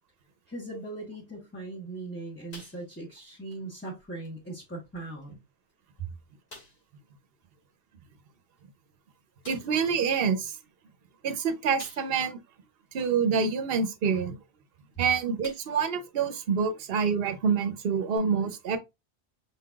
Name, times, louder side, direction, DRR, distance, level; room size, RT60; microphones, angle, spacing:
voice 1, 0.5-5.4 6.0-6.1 14.9-15.0, right 3 dB, 10° left, 1.1 m, -39 dB
sound 1, 2.5-3.2 3.5-3.7 4.2-4.3 5.2-5.3 5.7-5.8 6.5-6.9 8.6-8.7 9.4-9.8 11.8-12.4 12.9-13.0 14.8-15.0 15.4-15.9 16.4-16.5 18.1-18.2, left 2 dB, 70° left, 2.3 m, -49 dB
voice 2, 9.5-10.5 11.2-12.4 12.9-14.4 15.0-18.8, right 6 dB, 65° right, 0.9 m, -27 dB
5.4 x 3.8 x 2.3 m
omnidirectional pair, 1.1 m